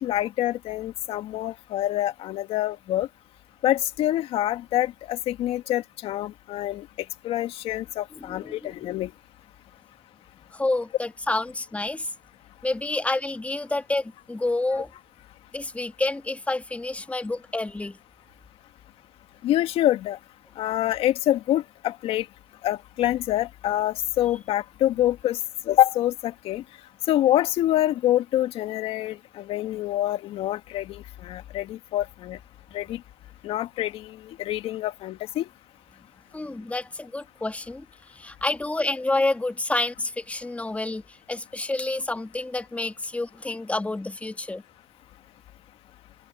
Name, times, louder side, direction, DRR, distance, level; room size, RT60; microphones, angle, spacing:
voice 1, 0.0-3.1 3.6-6.9 7.2-9.1 19.4-20.2 20.6-22.3 22.6-25.4 25.7-26.6 27.1-32.4 32.7-33.0 33.4-35.5, left 13 dB, 65° left, 2.2 m, -26 dB
voice 2, 8.3-8.9 10.5-12.1 12.6-14.9 15.5-18.0 36.3-44.6, left 2 dB, 15° left, 1.9 m, -29 dB
supercardioid pair, 80°, 11 cm